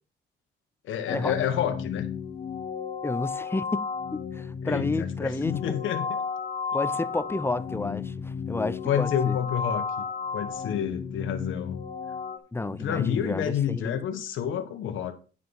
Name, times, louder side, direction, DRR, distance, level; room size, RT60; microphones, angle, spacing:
voice 1, 0.8-2.1 4.6-6.2 8.8-9.8 10.3-11.8 12.7-15.1, left 9 dB, 80° left, 1.2 m, -29 dB
sound 1, 1.1-12.4, left 6 dB, 40° left, 1.4 m, -33 dB
voice 2, 3.0-5.8 6.7-9.4 12.5-14.0, left 2 dB, 10° left, 0.6 m, -31 dB
9.7 x 4.9 x 5.4 m
cardioid pair, 90°, 20 cm